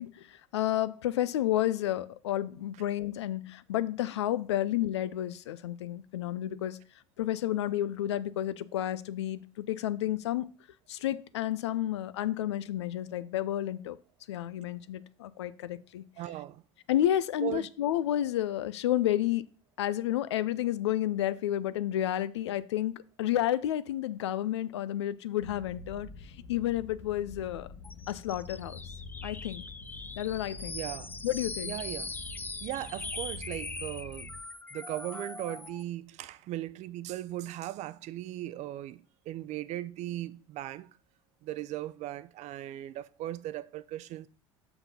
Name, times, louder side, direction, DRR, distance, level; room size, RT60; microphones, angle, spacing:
voice 1, 0.0-6.8 7.2-10.5 10.9-14.0 14.3-16.0 16.9-19.4 19.8-26.1 26.5-27.7 28.1-28.8 29.2-29.6 30.2-30.8 31.2-31.7, left 12 dB, 80° left, 0.4 m, -31 dB
voice 2, 16.2-16.6 17.4-17.7 30.7-31.2 31.6-32.2 32.6-34.3 34.7-40.9 41.4-44.3, right 14 dB, 55° right, 0.5 m, -38 dB
sound 1, 25.4-34.4, left 4 dB, 50° left, 0.9 m, -46 dB
sound 2, 27.8-35.8, left 3 dB, 15° left, 0.5 m, -41 dB
5.9 x 5.9 x 5.2 m
hypercardioid pair, 65°, 14 cm